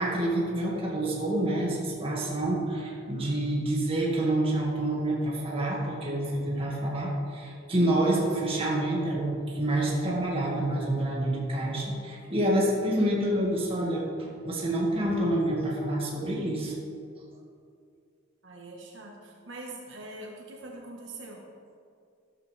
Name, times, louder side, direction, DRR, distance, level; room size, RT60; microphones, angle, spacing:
voice 1, 0.0-16.7, right 1 dB, 30° right, -3 dB, 2.2 m, -28 dB
voice 2, 18.4-21.4, right 2 dB, 65° right, -1 dB, 1.5 m, -43 dB
13.0 x 12.5 x 3.5 m, 2.3 s
head